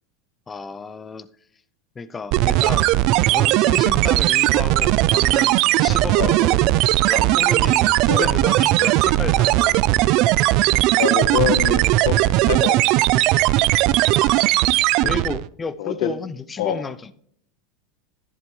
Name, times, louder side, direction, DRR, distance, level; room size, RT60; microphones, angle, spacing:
voice 1, 0.5-1.3 2.0-2.9 3.2-6.7 7.1-9.8 14.1-14.8 15.0-17.1, left 4 dB, 15° left, 14 dB, 0.5 m, -32 dB
sound 1, 2.3-15.5, right 16 dB, 45° right, 0.3 m, -18 dB
sound 2, 2.4-11.4, right 3 dB, 25° right, 3.5 m, -48 dB
voice 2, 11.0-12.2 12.5-12.8 15.0-15.1 15.8-16.1 16.6-16.8, left 9 dB, 65° left, 11 dB, 1.1 m, -24 dB
11.5 x 11.0 x 3.2 m, 0.64 s
supercardioid pair, 160°, 0 cm